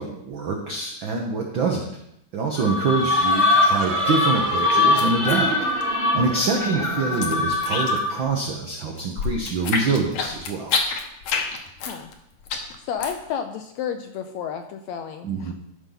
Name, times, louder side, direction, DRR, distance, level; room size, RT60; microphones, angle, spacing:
voice 1, 0.0-1.9 2.3-5.5 6.1-10.8 15.2-15.5, right 4 dB, 85° right, 1 dB, 1.0 m, -25 dB
deafen effect, 2.6-8.3, left 2 dB, 25° left, 0.6 m, -22 dB
sound 1, 3.0-8.2, right 5 dB, 65° right, 2.3 m, -32 dB
sound 2, 3.1-4.1 4.3-6.1 6.4-8.2 8.5-13.3, left 5 dB, 60° left, 1.7 m, -28 dB
voice 2, 6.7-7.2 11.8-12.1 12.8-15.5, left 8 dB, 80° left, 6 dB, 1.7 m, -32 dB
13.5 x 5.4 x 3.9 m, 0.76 s
omnidirectional pair, 3.6 m